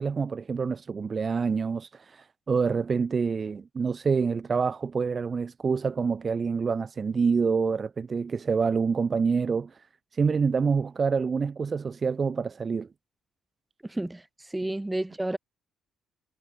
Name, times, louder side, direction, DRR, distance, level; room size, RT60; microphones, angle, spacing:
voice 1, 0.0-9.9 10.1-12.9, right 5 dB, 35° right, 0.6 m, -27 dB
voice 2, 13.8-15.4, right 1 dB, 10° right, 1.5 m, -31 dB
figure-of-eight pair, 45°, 0 cm